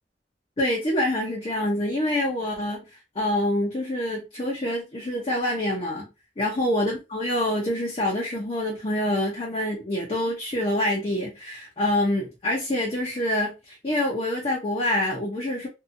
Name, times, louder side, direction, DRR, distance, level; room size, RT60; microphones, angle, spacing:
voice 1, 0.6-2.8 3.2-6.1 6.4-15.7, left 1 dB, 35° left, 0.6 m, -26 dB
2.7 x 2.3 x 2.6 m
head